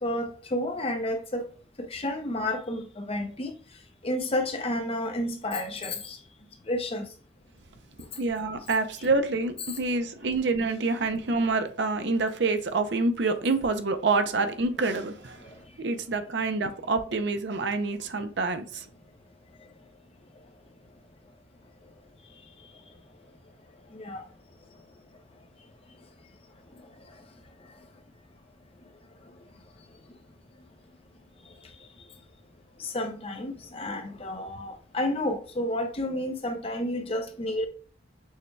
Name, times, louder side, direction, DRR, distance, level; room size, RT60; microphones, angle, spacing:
voice 1, 0.0-1.4 1.8-3.6 4.0-6.2 6.6-7.1 15.4-15.6 23.9-24.2 27.1-27.2 31.4-31.9 32.8-37.7, left 1 dB, 30° left, 0.7 m, -31 dB
voice 2, 8.2-15.4 15.8-18.9, right 3 dB, 65° right, 0.6 m, -27 dB
6.3 x 2.3 x 3.2 m
head